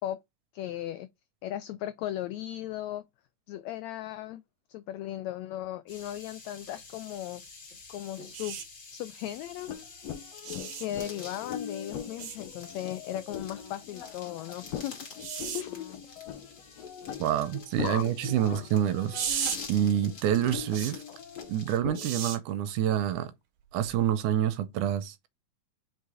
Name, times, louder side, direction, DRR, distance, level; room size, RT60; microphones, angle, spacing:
voice 1, 0.5-1.1 1.4-3.0 3.5-4.4 4.7-7.4 7.9-8.6 8.9-9.7 10.8-14.9 15.5-16.0 17.8-18.0 18.4-18.6 21.1-21.2, left 13 dB, 85° left, 1.5 m, -37 dB
sound 1, 5.9-21.8, left 4 dB, 40° left, 2.5 m, -48 dB
sound 2, 8.3-8.6 10.4-10.9 12.2-12.4 15.2-15.6 19.1-19.6 20.7-20.9 21.9-22.4 23.8-24.0, right 8 dB, 60° right, 1.8 m, -34 dB
sound 3, 9.7-22.1, left 9 dB, 70° left, 1.8 m, -41 dB
voice 2, 17.2-21.0 21.5-23.3 23.7-25.3, right 10 dB, 80° right, 2.1 m, -27 dB
5.4 x 3.8 x 4.7 m
omnidirectional pair, 3.7 m